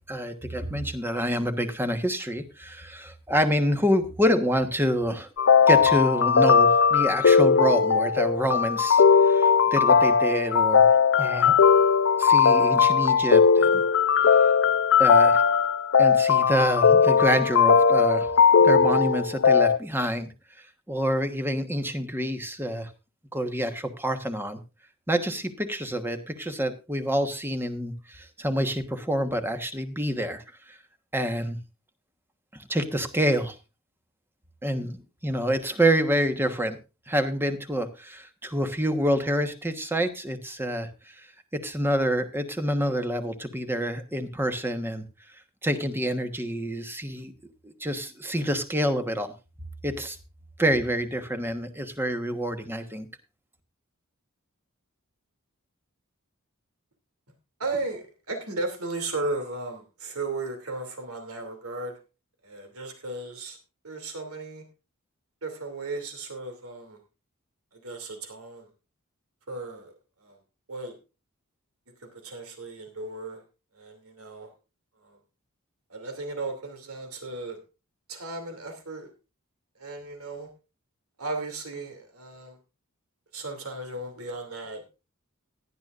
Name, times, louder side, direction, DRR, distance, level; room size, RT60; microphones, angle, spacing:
voice 1, 0.1-5.3 5.7-10.9 11.2-11.5 12.2-13.8 15.0-15.4 16.0-18.3 18.6-20.3 20.9-22.9 23.3-24.6 25.1-30.4 30.7-30.8 31.1-31.6 32.7-33.5 34.6-36.8 37.1-41.1 41.5-45.0 45.6-47.3 47.6-49.3 49.8-50.2 50.6-53.1, equal, 10° right, 8 dB, 1.2 m, -27 dB
sound 1, 5.4-19.8, left 6 dB, 60° left, 0.6 m, -19 dB
voice 2, 57.6-62.0 62.4-63.6 63.8-64.6 65.4-67.0 67.7-68.7 69.5-69.9 70.2-70.4 70.7-70.9 72.0-73.4 73.7-74.5 75.0-75.2 75.9-77.6 78.1-79.1 79.8-80.5 81.2-82.6 83.3-84.8, right 2 dB, 85° right, 5 dB, 2.7 m, -35 dB
17.5 x 11.0 x 2.5 m, 0.29 s
head